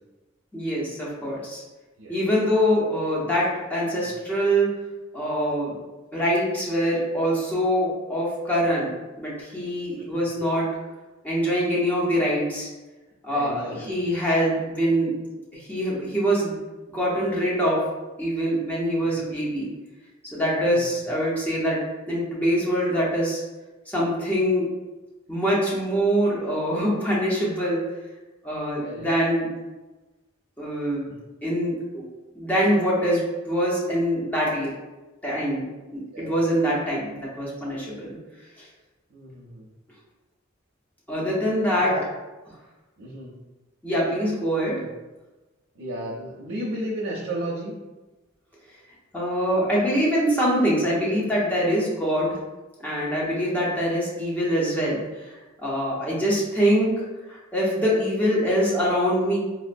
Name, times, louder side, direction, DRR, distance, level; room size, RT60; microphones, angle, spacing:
voice 1, 0.5-1.6 2.1-4.7 5.1-5.8 6.1-8.9 9.2-10.7 11.2-12.7 13.2-15.2 15.5-16.6 16.9-17.8 18.2-19.7 20.3-21.8 22.1-23.4 23.9-24.7 25.3-27.8 28.4-29.5 30.6-31.1 31.4-32.0 32.3-34.7 35.2-35.6 35.9-38.2 38.6-38.7 41.1-41.9 43.8-44.8 49.1-52.4 52.8-55.3 55.6-56.9 57.3-59.4, equal, 10° left, -6 dB, 0.8 m, -24 dB
voice 2, 13.3-14.3 19.0-19.2 20.7-20.9 28.8-29.1 31.1-31.2 36.1-36.3 39.1-39.7 41.7-42.0 43.0-43.3 44.8-44.9 45.7-47.7, right 1 dB, 80° right, -6 dB, 0.6 m, -34 dB
4.2 x 2.1 x 2.5 m, 1.1 s
head